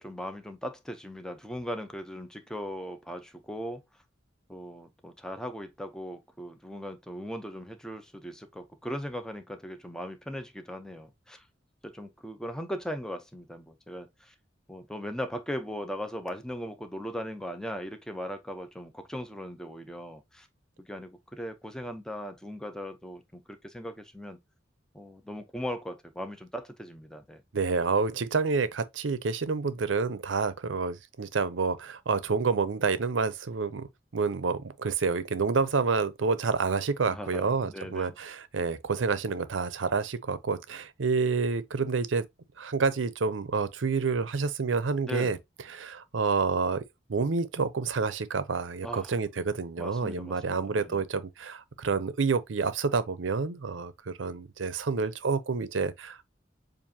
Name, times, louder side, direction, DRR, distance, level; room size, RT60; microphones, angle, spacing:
voice 1, 0.0-3.8 4.5-11.5 11.8-14.3 14.7-20.5 20.8-24.4 24.9-27.4 37.1-38.1 45.1-45.4 48.8-49.2 49.8-51.0, equal, 5° left, 0.6 m, -38 dB
voice 2, 27.5-33.9 34.1-42.2 42.6-45.4 45.7-46.8 47.1-56.2, right 4 dB, 90° right, 0.6 m, -28 dB
7.2 x 2.6 x 2.8 m
head